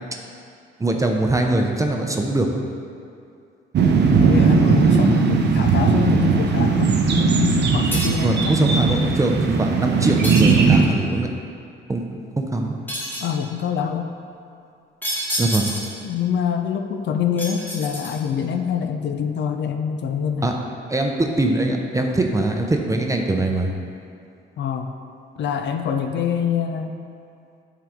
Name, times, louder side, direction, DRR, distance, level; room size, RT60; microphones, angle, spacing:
voice 1, 0.8-2.5 8.2-11.3 11.9-12.0 12.4-12.7 15.4-15.7 20.4-20.5 20.9-23.7, right 2 dB, 15° right, 2 dB, 0.6 m, -22 dB
sound 1, 3.7-10.8, right 5 dB, 60° right, 0.7 m, -18 dB
voice 2, 4.2-9.1 13.2-14.1 16.0-20.5 24.6-24.9 25.4-27.0, left 7 dB, 65° left, 6 dB, 0.5 m, -25 dB
sound 2, 7.9-8.4 10.2-11.0 12.9-13.4 15.0-16.1 17.4-18.4, equal, 10° left, 1.2 m, -29 dB
8.6 x 3.8 x 3.6 m, 2.4 s
cardioid pair, 90°, 20 cm